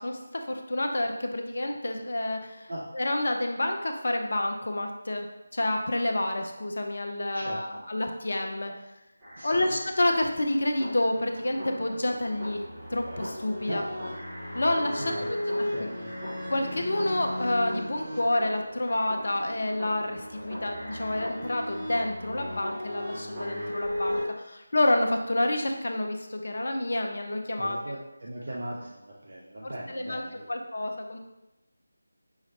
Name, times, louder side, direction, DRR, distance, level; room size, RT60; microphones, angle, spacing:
voice 1, 0.0-2.7 2.9-5.3 5.5-8.7 9.4-13.8 14.5-15.4 16.5-27.8 29.6-30.2 30.5-31.2, left 1 dB, 50° left, 4 dB, 0.5 m, -29 dB
voice 2, 7.3-7.8 9.4-9.8 13.7-13.9 15.0-15.3 15.7-16.1 27.6-30.5, right 1 dB, 50° right, -4 dB, 0.6 m, -38 dB
sound 1, 9.2-24.2, left 1 dB, 15° right, 1.3 m, -36 dB
5.8 x 3.1 x 2.7 m, 0.95 s
figure-of-eight pair, 160°, 0 cm